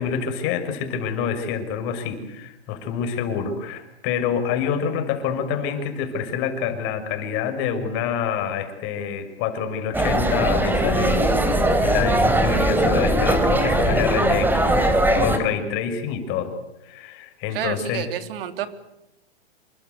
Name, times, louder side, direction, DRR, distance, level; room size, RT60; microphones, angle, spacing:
voice 1, 0.0-14.7 15.2-16.5 16.8-18.1, left 7 dB, 40° left, 8 dB, 6.1 m, -27 dB
sound 1, 9.9-15.4, right 1 dB, 5° right, 3.8 m, -20 dB
voice 2, 17.5-18.7, right 11 dB, 60° right, 9 dB, 3.5 m, -29 dB
27.5 x 24.0 x 8.2 m, 0.90 s
hypercardioid pair, 130°, 32 cm